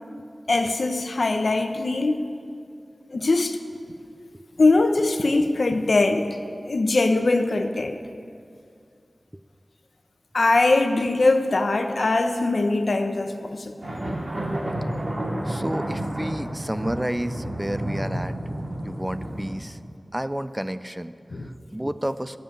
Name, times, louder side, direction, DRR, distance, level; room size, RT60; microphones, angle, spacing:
voice 1, 0.5-2.2 3.1-3.6 4.6-6.3 6.7-8.0 10.3-14.0 21.3-21.5, left 2 dB, 70° left, 6 dB, 0.9 m, -21 dB
sound 1, 13.8-19.5, right 1 dB, 65° right, 2.6 m, -30 dB
voice 2, 15.5-19.8 20.1-21.1 21.4-22.4, right 1 dB, 15° right, 12 dB, 0.4 m, -31 dB
13.0 x 6.9 x 9.1 m, 2.3 s
wide cardioid pair, 70°, 0 cm